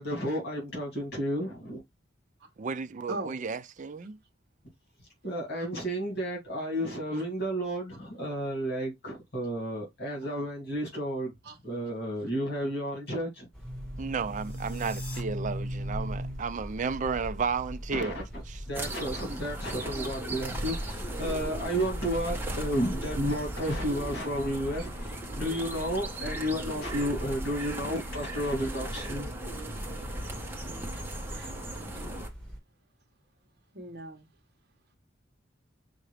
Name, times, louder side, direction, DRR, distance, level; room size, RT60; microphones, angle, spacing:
voice 1, 0.0-1.8 5.2-11.3 11.6-13.5 17.9-18.2 18.7-29.3, equal, 60° left, 2.4 m, -32 dB
voice 2, 2.6-4.2 14.0-18.2 18.5-18.6, right 5 dB, 40° right, 0.4 m, -33 dB
sound 1, 13.5-32.6, equal, 5° left, 1.7 m, -40 dB
sound 2, 14.1-15.2, left 2 dB, 30° left, 2.8 m, -47 dB
sound 3, 18.7-32.3, right 1 dB, 10° right, 1.1 m, -37 dB
voice 3, 30.5-32.1 33.7-34.3, right 2 dB, 60° right, 1.1 m, -42 dB
5.8 x 2.6 x 3.2 m
head